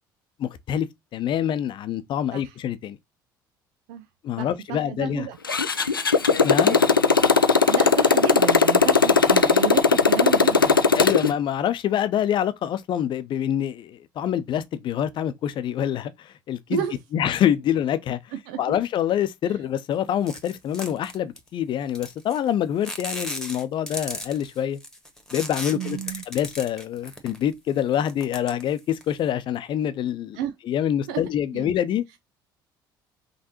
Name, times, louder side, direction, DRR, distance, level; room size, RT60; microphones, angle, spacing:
voice 1, 0.4-0.9 1.1-3.0 4.2-5.3 6.4-6.8 11.0-16.8 17.1-18.2 18.6-24.8 25.3-26.0 26.3-30.4 30.6-32.0, left 10 dB, 45° left, 0.7 m, -26 dB
voice 2, 4.4-5.4 7.7-10.8 16.7-17.0 18.3-18.8 19.5-19.6 25.7-26.2 30.3-30.5 31.1-31.2 31.5-31.6, right 9 dB, 65° right, 0.5 m, -31 dB
Motorcycle, 5.4-11.3, left 5 dB, 90° left, 0.4 m, -18 dB
sound 1, 20.3-21.5 22.0-22.5 22.8-27.5 27.9-29.2, left 1 dB, 5° left, 1.5 m, -36 dB
5.4 x 3.3 x 2.9 m
figure-of-eight pair, 55°, 11 cm